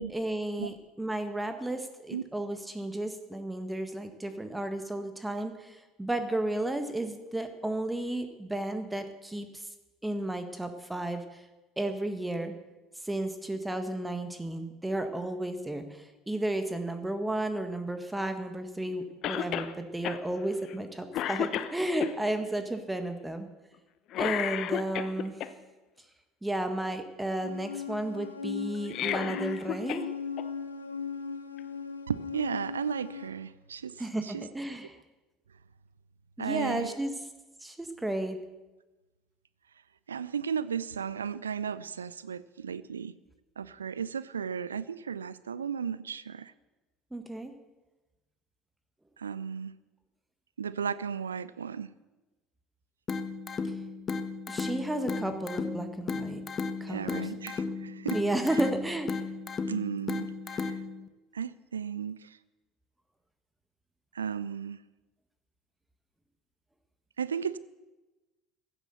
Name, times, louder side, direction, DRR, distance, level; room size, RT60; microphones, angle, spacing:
voice 1, 0.1-9.7 10.0-11.5 11.8-12.5 13.0-23.5 24.2-25.4 26.4-30.0 34.0-35.0 36.4-37.2 37.6-38.4 47.1-47.5 54.5-56.4 56.8-57.3 58.1-59.1, right 1 dB, 10° right, 8 dB, 1.5 m, -33 dB
Cough, 19.2-19.7 20.0-20.2 20.7-20.9 21.1-22.1 24.1-25.5 28.7-30.1 30.4-30.5 31.6-31.7, left 11 dB, 45° left, 0.9 m, -32 dB
sound 1, 27.4-33.3, left 6 dB, 80° left, 1.0 m, -38 dB
voice 2, 32.1-33.9 34.2-34.4 36.4-37.0 40.1-43.2 43.6-46.5 49.2-49.7 50.6-51.9 56.9-58.2 59.7-60.8 61.3-62.4 64.1-64.8 67.2-67.6, right 7 dB, 75° right, 17 dB, 0.5 m, -35 dB
sound 2, 53.1-61.1, left 4 dB, 30° left, 1.3 m, -35 dB
16.0 x 12.0 x 6.9 m, 1.1 s
figure-of-eight pair, 65°, 0 cm